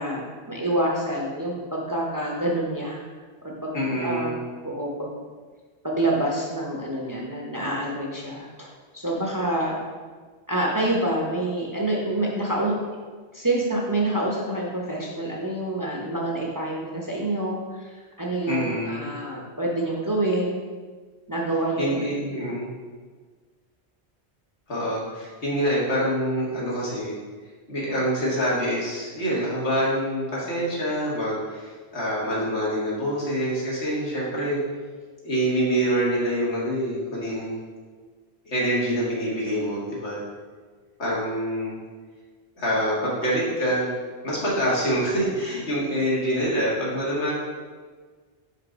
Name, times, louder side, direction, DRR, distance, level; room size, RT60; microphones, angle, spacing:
voice 1, 0.0-3.0 3.4-4.3 4.6-5.2 5.8-9.8 10.5-12.7 13.3-20.7 21.3-21.9, right 1 dB, 20° right, -3 dB, 0.7 m, -27 dB
voice 2, 3.7-4.4 18.5-19.1 21.8-22.7 24.7-27.2 27.7-34.6 35.2-37.5 38.5-40.2 41.0-41.8 42.6-43.9 44.2-47.3, equal, 85° left, -6 dB, 1.9 m, -26 dB
5.2 x 3.8 x 5.0 m, 1.5 s
omnidirectional pair, 1.1 m